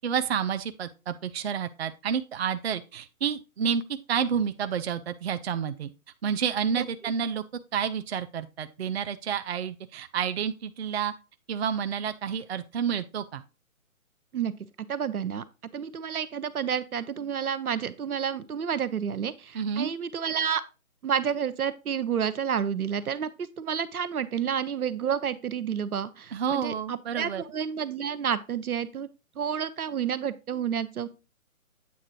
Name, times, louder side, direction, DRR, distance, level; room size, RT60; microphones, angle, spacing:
voice 1, 0.0-3.8 4.1-5.9 6.2-7.4 7.7-11.1 11.5-13.4 19.5-19.9 26.3-27.4, right 7 dB, 50° right, 0.5 m, -29 dB
voice 2, 14.8-15.4 15.7-20.6 21.0-29.1 29.4-31.1, right 8 dB, 85° right, 0.8 m, -30 dB
8.4 x 3.7 x 4.3 m
figure-of-eight pair, 150°, 43 cm